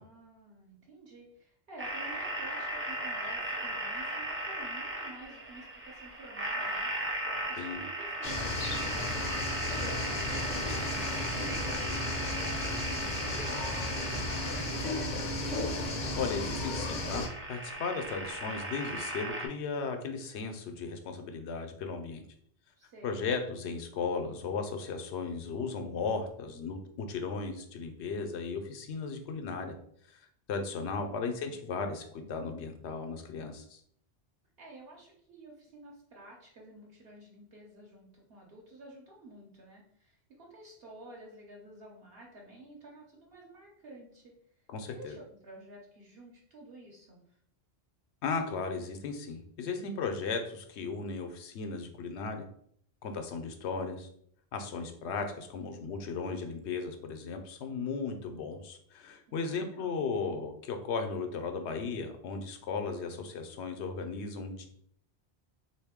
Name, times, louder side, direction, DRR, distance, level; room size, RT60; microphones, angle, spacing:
voice 1, 0.0-6.9 7.5-15.2 22.8-23.3 34.6-44.4 44.9-47.4 59.3-60.1, right 1 dB, 65° right, -2 dB, 1.0 m, -51 dB
sound 1, 1.8-19.5, right 1 dB, 20° right, 0.4 m, -37 dB
sound 2, 8.2-17.3, left 2 dB, 55° left, 0.6 m, -34 dB
voice 2, 16.2-22.2 23.0-29.8 30.1-30.2 30.5-33.8 44.7-45.2 48.2-52.5 53.0-54.1 54.5-64.7, left 4 dB, 85° left, 5 dB, 0.9 m, -36 dB
3.4 x 2.6 x 3.5 m, 0.65 s
omnidirectional pair, 1.1 m